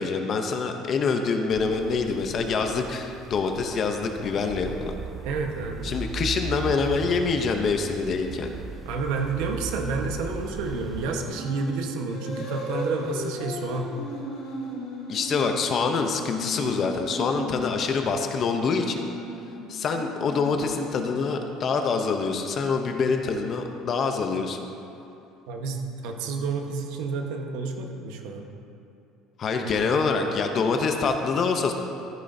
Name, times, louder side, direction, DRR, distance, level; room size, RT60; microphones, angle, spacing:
voice 1, 0.0-4.9 5.8-8.6 15.1-19.1 19.7-24.6 29.4-31.7, left 4 dB, 30° left, 5 dB, 0.6 m, -25 dB
sound 1, 1.5-11.3, right 5 dB, 15° right, 0.4 m, -38 dB
voice 2, 5.2-6.0 8.8-13.9 25.5-28.5 29.6-29.8, right 4 dB, 70° right, 3 dB, 1.1 m, -30 dB
sound 2, 11.2-11.7 12.1-17.7 18.4-21.4, left 1 dB, 65° left, 2.6 m, -36 dB
13.5 x 9.8 x 2.7 m, 2.7 s
cardioid pair, 175°, 0 cm